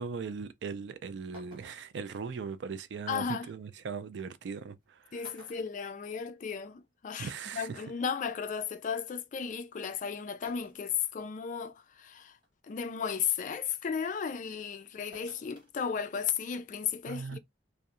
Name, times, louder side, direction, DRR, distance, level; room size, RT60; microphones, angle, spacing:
voice 1, 0.0-5.3 7.2-7.8 17.1-17.4, right 5 dB, 65° right, 0.3 m, -39 dB
sound 1, 0.8-0.9 1.3-2.0 3.6-3.7 4.7-4.8 5.2-6.6 6.9-7.0 8.3-8.4 10.5-11.0 11.5-11.6 12.2-12.5 15.1-15.7 16.1-16.2, equal, 25° right, 1.1 m, -54 dB
voice 2, 3.1-3.5 5.1-12.4 12.6-17.4, left 7 dB, 45° left, 0.3 m, -35 dB
2.7 x 2.1 x 2.4 m
head